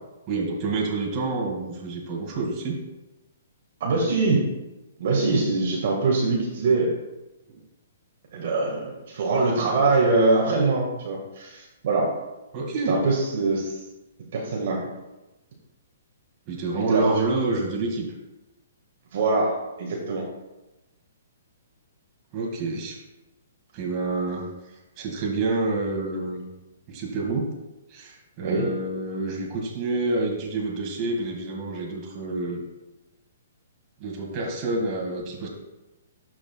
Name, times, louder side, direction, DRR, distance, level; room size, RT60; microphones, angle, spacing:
voice 1, 0.3-2.8 7.5-7.6 12.5-13.0 16.5-18.0 22.3-23.0 23.7-24.5 25.0-26.5 26.9-27.5 27.9-32.6 34.0-35.5, right 3 dB, 35° right, -1 dB, 2.0 m, -28 dB
voice 2, 3.8-4.4 5.0-6.9 8.3-12.1 12.9-13.8 14.3-14.8 16.7-17.0 19.1-20.2 28.4-28.7, right 3 dB, 60° right, -2 dB, 1.7 m, -23 dB
12.5 x 4.8 x 2.3 m, 1.0 s
hypercardioid pair, 135°, 0 cm